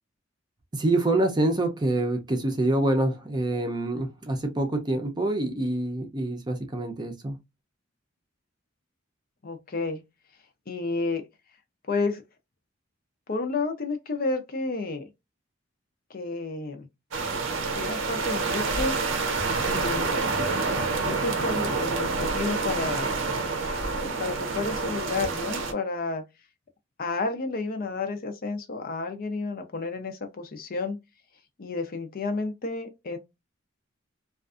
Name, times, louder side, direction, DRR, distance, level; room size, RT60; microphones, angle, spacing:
voice 1, 0.7-7.3, right 2 dB, 20° right, 0.5 m, -26 dB
voice 2, 9.4-10.0 10.7-11.2 11.9-12.2 13.3-15.0 16.1-16.9 17.8-18.9 19.7-20.2 21.0-23.2 24.0-26.2 27.0-31.0 31.6-33.2, left 3 dB, 50° left, 0.5 m, -31 dB
sound 1, 17.1-25.7, right 4 dB, 75° right, 0.6 m, -28 dB
2.5 x 2.3 x 2.4 m
head